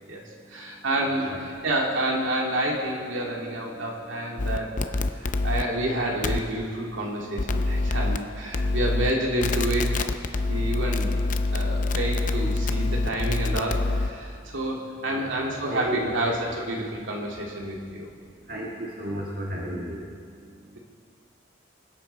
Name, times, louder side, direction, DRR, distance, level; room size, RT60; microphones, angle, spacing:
voice 1, 0.1-4.7 5.1-9.9 10.5-11.2 11.5-18.1, right 1 dB, 75° right, -1 dB, 2.4 m, -29 dB
voice 2, 1.0-1.4 3.7-3.9 4.4-4.5 14.3-14.4 15.1-15.4 15.7-16.2 18.5-20.8, equal, 45° right, -3 dB, 1.7 m, -35 dB
sound 1, 4.4-5.6 6.2-6.4 7.4-8.2 8.5-9.1 9.4-14.1, left 2 dB, 40° left, 0.5 m, -25 dB
25.0 x 8.6 x 4.2 m, 2.1 s
head